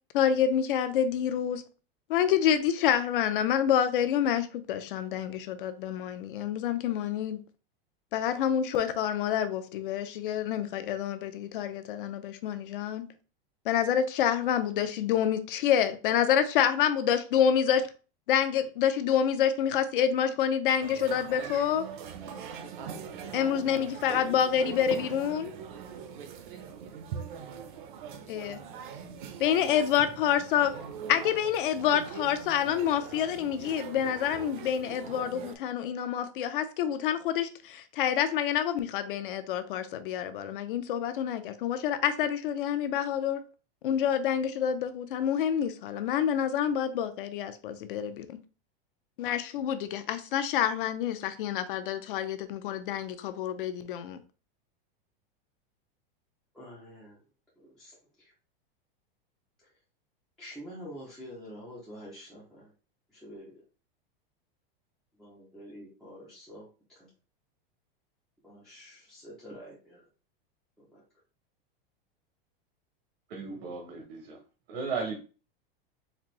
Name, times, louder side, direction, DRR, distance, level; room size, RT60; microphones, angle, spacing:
voice 1, 0.1-1.6 2.1-7.4 8.1-13.0 13.6-17.9 18.3-21.9 23.3-25.5 28.3-28.6 29.4-30.7 31.1-43.4 43.8-48.4 49.2-54.2, left 9 dB, 60° left, 0.6 m, -27 dB
sound 1, 20.8-35.6, right 7 dB, 55° right, 0.6 m, -42 dB
voice 2, 56.5-57.2 57.6-58.3 59.6-59.7 60.4-62.7 63.1-63.5 65.1-67.1 68.4-70.1 70.9-71.0, equal, ahead, 0.4 m, -47 dB
voice 3, 73.3-74.4 74.7-75.2, right 4 dB, 70° right, 1.0 m, -35 dB
4.1 x 2.5 x 3.0 m
supercardioid pair, 175°, 30 cm